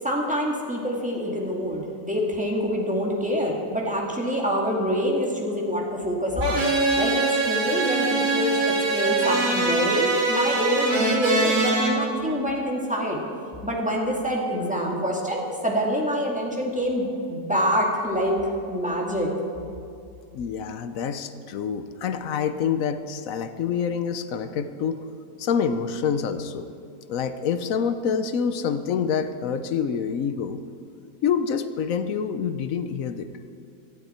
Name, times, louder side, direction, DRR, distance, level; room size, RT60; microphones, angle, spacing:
voice 1, 0.0-13.2 13.6-18.4 18.7-19.3, equal, 5° right, -2 dB, 1.7 m, -26 dB
sound 1, 6.4-11.9, right 3 dB, 80° right, 3.0 m, -23 dB
voice 2, 20.3-25.0 25.4-26.7 27.1-30.6 31.2-33.3, left 7 dB, 65° left, 10 dB, 0.9 m, -27 dB
17.5 x 12.0 x 4.4 m, 2.5 s
omnidirectional pair, 1.9 m